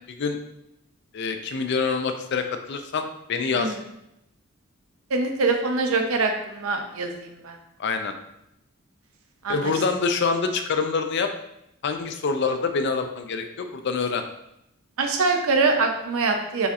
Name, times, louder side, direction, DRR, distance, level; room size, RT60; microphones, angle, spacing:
voice 1, 0.1-0.4 1.1-3.8 7.8-8.1 9.5-11.3 11.8-14.2, left 4 dB, 55° left, 7 dB, 0.4 m, -26 dB
voice 2, 5.1-7.6 9.4-9.6 15.0-16.7, right 3 dB, 85° right, 4 dB, 0.6 m, -24 dB
6.9 x 2.7 x 2.4 m, 0.81 s
head